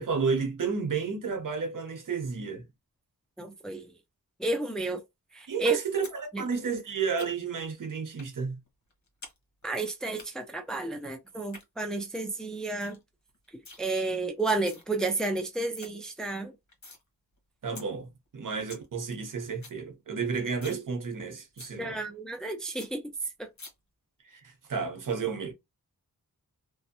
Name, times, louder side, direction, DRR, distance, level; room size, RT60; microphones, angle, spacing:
voice 1, 0.0-2.6 5.5-8.6 17.6-22.0 24.3-25.5, right 5 dB, 65° right, 0.8 m, -31 dB
voice 2, 3.4-3.9 4.4-5.0 5.3-5.8 6.3-6.4 9.6-13.0 13.5-16.5 21.8-23.0 23.4-23.5, right 2 dB, ahead, 0.4 m, -32 dB
sound 1, 6.0-6.2 6.5-7.6 8.2-8.3 8.7-9.4 9.6-10.3 11.3-11.6 12.1-12.2 12.5-12.6 12.8-13.0 13.3-13.8 14.4-14.8 15.3-15.4 15.5-15.9 16.3-17.0 17.4-17.5 17.8-17.9 18.3-18.4 18.5-18.9 19.2-19.3 19.5-19.8 20.1-20.2 20.5-20.8 21.1-21.2 21.6-21.7 22.1-22.2 22.5-22.6 22.8-22.9 23.6-23.7, left 3 dB, 55° left, 1.0 m, -47 dB
2.5 x 2.1 x 2.7 m
wide cardioid pair, 100°, 34 cm